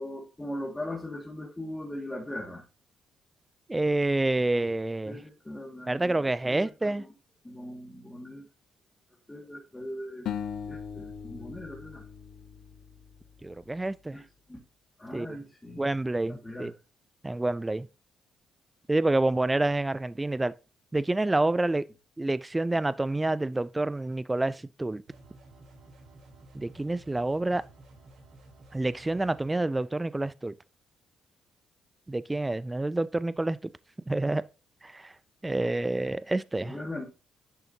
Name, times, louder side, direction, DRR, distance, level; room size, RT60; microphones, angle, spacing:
voice 1, 0.0-2.6 4.5-4.7 5.1-7.1 7.4-8.5 9.3-10.3 10.7-12.0 14.1-14.2 14.5-14.6 15.0-15.8 16.3-16.7 36.6-37.1, left 1 dB, 15° left, 1.9 m, -39 dB
voice 2, 3.7-5.2 5.9-7.0 13.4-14.2 15.1-15.4 15.8-16.7 17.2-17.9 18.9-20.5 20.9-21.8 22.2-25.0 26.5-27.6 28.7-30.5 32.1-33.6 34.1-34.4 34.8-35.1 35.4-36.8, right 2 dB, 15° right, 0.4 m, -28 dB
sound 1, 10.3-13.5, left 8 dB, 75° left, 0.9 m, -39 dB
sound 2, 25.1-29.5, right 2 dB, 70° right, 3.2 m, -53 dB
10.5 x 6.9 x 2.7 m
cardioid pair, 90°, 0 cm